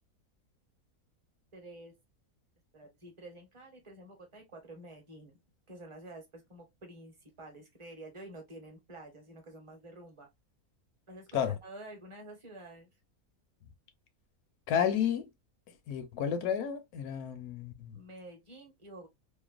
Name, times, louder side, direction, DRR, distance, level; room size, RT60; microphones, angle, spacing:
voice 1, 1.5-1.9 2.7-5.4 5.7-10.3 11.1-12.9 17.9-19.1, right 1 dB, 30° right, 0.7 m, -49 dB
voice 2, 14.7-15.3 15.9-18.0, left 8 dB, 80° left, 1.1 m, -31 dB
2.9 x 2.1 x 2.3 m
omnidirectional pair, 1.6 m